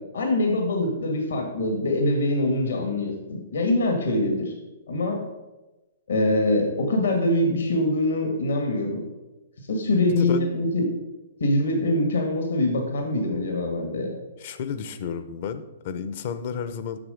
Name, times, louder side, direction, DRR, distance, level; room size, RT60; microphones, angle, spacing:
voice 1, 0.1-4.5 4.9-5.2 6.1-9.0 9.7-10.9 11.4-14.2, left 1 dB, 80° left, 3 dB, 2.0 m, -24 dB
voice 2, 10.1-10.5 14.4-17.0, left 7 dB, 50° left, 11 dB, 0.9 m, -31 dB
9.8 x 6.8 x 5.2 m, 1.1 s
hypercardioid pair, 135°, 0 cm